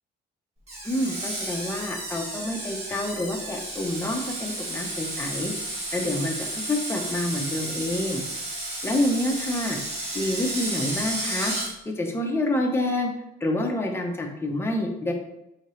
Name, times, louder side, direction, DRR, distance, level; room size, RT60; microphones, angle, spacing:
Screech, 0.7-11.7, right 1 dB, 35° right, 1.4 m, -32 dB
voice 1, 0.8-5.5 5.9-8.2 8.8-9.8 10.1-11.5 11.8-13.1 13.4-15.1, left 1 dB, 10° left, 1 dB, 0.7 m, -27 dB
4.4 x 2.8 x 3.1 m, 0.87 s
cardioid pair, 90°, 20 cm